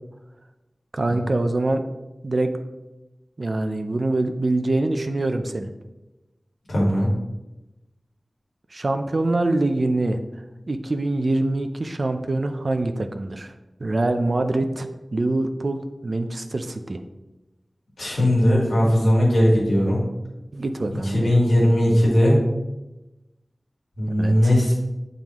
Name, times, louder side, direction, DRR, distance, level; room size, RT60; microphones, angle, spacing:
voice 1, 0.9-1.8 2.2-2.5 3.4-5.7 8.7-10.2 10.7-13.5 13.8-17.0 20.5-21.4 24.2-24.5, right 2 dB, 50° right, 7 dB, 0.5 m, -24 dB
voice 2, 6.7-7.1 18.0-20.0 21.1-22.4 24.0-24.7, equal, 80° left, -4 dB, 1.8 m, -18 dB
8.6 x 3.7 x 3.0 m, 1.0 s
wide cardioid pair, 80°, 0 cm